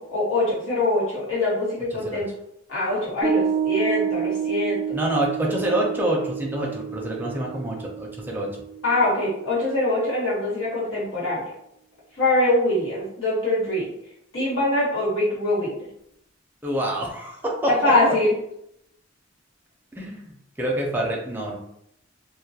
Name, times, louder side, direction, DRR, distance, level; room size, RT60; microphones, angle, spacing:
voice 1, 0.0-2.3 2.7-4.9 8.8-11.4 12.2-13.8 14.3-15.7 17.8-18.3, left 2 dB, 85° left, -8 dB, 1.3 m, -23 dB
voice 2, 1.9-2.2 4.9-8.5 16.6-18.1 20.0-20.3 20.6-21.6, right 1 dB, 10° right, -2 dB, 0.4 m, -26 dB
Piano, 3.2-10.0, right 7 dB, 30° left, 0.8 m, -29 dB
2.3 x 2.1 x 2.7 m, 0.77 s
head